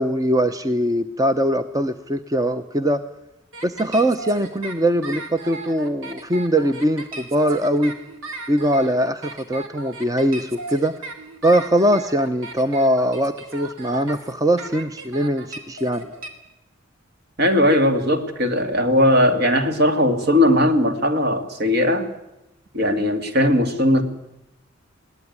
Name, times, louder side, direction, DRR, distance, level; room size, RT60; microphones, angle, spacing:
voice 1, 0.0-3.0 3.6-7.9 8.5-10.9 11.4-16.1, right 1 dB, 20° right, 9 dB, 0.8 m, -21 dB
sound 1, 3.5-16.3, right 3 dB, 80° right, 3.1 m, -36 dB
voice 2, 17.4-22.1 22.7-24.0, left 1 dB, 55° right, 7 dB, 2.6 m, -18 dB
21.5 x 18.0 x 9.6 m, 0.90 s
head